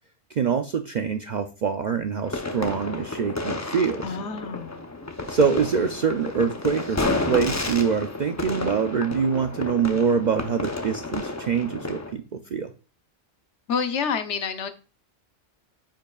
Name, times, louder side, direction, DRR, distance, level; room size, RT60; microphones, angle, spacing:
voice 1, 0.3-4.2 5.3-12.7, right 6 dB, 60° right, 0.4 m, -25 dB
sound 1, 2.2-12.1, left 2 dB, 20° left, 0.5 m, -31 dB
voice 2, 4.0-4.8 13.7-14.7, left 6 dB, 70° left, 1.0 m, -28 dB
8.7 x 5.3 x 2.3 m
omnidirectional pair, 1.2 m